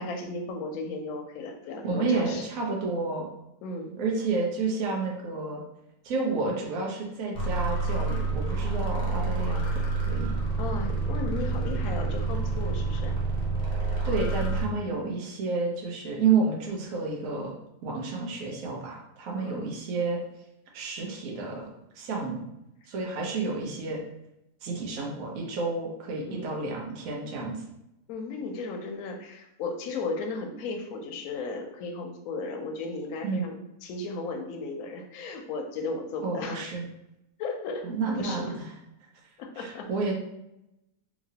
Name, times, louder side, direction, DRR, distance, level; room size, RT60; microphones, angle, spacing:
voice 1, 0.0-2.4 3.6-3.9 10.6-13.2 19.3-19.7 26.3-26.5 28.1-36.6 37.4-37.9 38.2-38.5 39.4-39.9, left 3 dB, 70° left, 3 dB, 0.9 m, -35 dB
voice 2, 1.8-3.3 4.0-5.6 6.0-10.4 14.0-17.5 17.8-20.2 20.7-21.7 22.0-22.4 22.9-24.0 24.6-27.6 33.2-33.4 36.2-36.9 37.8-38.7 39.6-40.1, right 4 dB, 65° right, -1 dB, 1.1 m, -30 dB
sound 1, 7.3-14.6, right 3 dB, 40° left, 0.7 m, -28 dB
3.0 x 2.8 x 2.7 m, 0.87 s
omnidirectional pair, 1.7 m